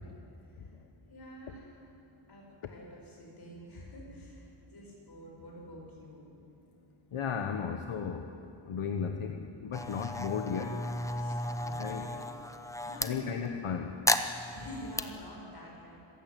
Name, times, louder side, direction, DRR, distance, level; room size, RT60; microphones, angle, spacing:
voice 1, 1.1-1.9 2.3-6.2 10.0-10.1 11.1-12.2 12.8-13.3 14.5-15.9, equal, 50° left, -2 dB, 7.1 m, -48 dB
voice 2, 7.1-8.3 8.7-10.7 11.8-12.1 13.0-13.9, left 6 dB, 75° left, 5 dB, 1.3 m, -34 dB
sound 1, 9.7-13.1 14.1-15.0, left 1 dB, 5° left, 0.8 m, -34 dB
25.5 x 15.5 x 9.2 m, 2.7 s
wide cardioid pair, 150°, 50 cm